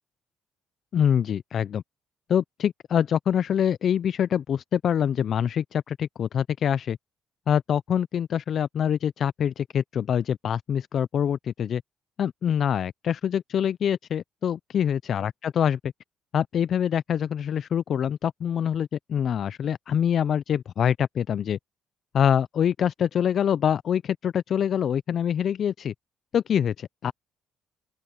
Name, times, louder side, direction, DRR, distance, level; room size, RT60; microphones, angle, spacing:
voice 1, 0.9-1.8 2.3-7.0 7.5-11.8 12.2-15.9 16.3-21.6 22.1-25.9 26.3-27.1, left 8 dB, 60° left, 0.4 m, -25 dB
open air
supercardioid pair, 80°, 0 cm